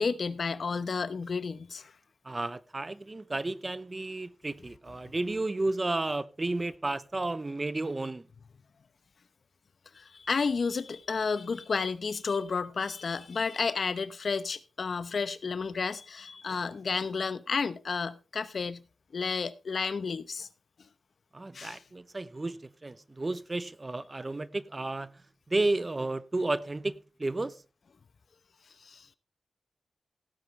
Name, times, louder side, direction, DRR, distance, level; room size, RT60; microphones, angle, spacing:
voice 1, 0.0-1.9 9.9-18.8 19.1-20.5 21.5-21.8 28.8-29.1, left 5 dB, 65° left, 0.9 m, -31 dB
voice 2, 2.2-8.3 21.3-25.2 25.5-27.6, right 2 dB, 30° right, 0.7 m, -32 dB
16.5 x 9.4 x 3.3 m
wide cardioid pair, 95°, 0 cm